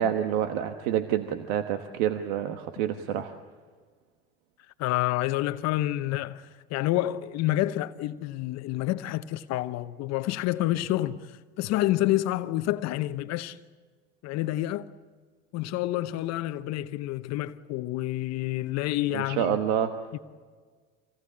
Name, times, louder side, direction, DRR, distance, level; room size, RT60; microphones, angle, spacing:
voice 1, 0.0-3.3 19.1-20.0, right 10 dB, 70° right, 1.4 m, -28 dB
voice 2, 4.8-13.6 14.2-14.9 15.5-19.6 20.1-20.2, left 15 dB, 55° left, 0.9 m, -28 dB
26.0 x 18.5 x 8.6 m
hypercardioid pair, 80°, 31 cm